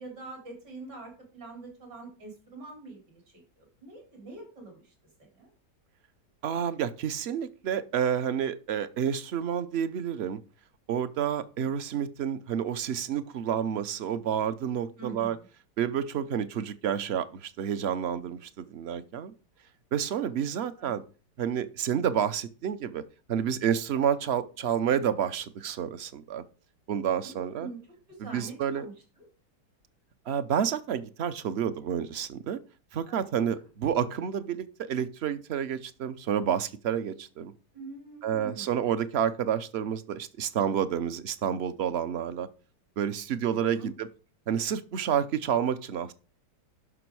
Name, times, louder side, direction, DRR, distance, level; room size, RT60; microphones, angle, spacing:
voice 1, 0.0-3.2 3.6-4.9 5.4-5.5 15.0-15.5 20.2-20.4 20.8-21.0 27.2-27.8 28.1-28.9 33.1-33.2 37.7-38.7 43.4-43.9, right 3 dB, 75° right, 1 dB, 4.4 m, -44 dB
voice 2, 6.4-10.4 10.9-15.4 15.8-19.3 19.9-21.0 21.4-23.0 23.3-26.4 26.9-27.7 28.2-28.9 30.3-32.6 32.9-37.5 38.2-42.5 43.0-44.1 44.5-46.1, right 8 dB, 55° right, 13 dB, 0.7 m, -29 dB
11.5 x 6.0 x 4.7 m, 0.36 s
omnidirectional pair, 1.8 m